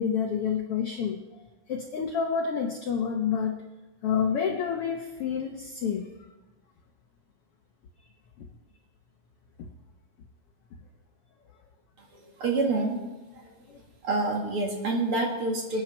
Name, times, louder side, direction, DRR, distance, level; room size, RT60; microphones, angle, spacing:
voice 1, 0.0-3.6 4.0-6.1 13.7-13.8, left 7 dB, 85° left, 3 dB, 1.2 m, -29 dB
voice 2, 12.0-13.0 13.3-13.5 14.0-15.8, right 3 dB, 45° right, 0 dB, 2.5 m, -28 dB
27.0 x 9.1 x 4.5 m, 1.1 s
omnidirectional pair, 4.0 m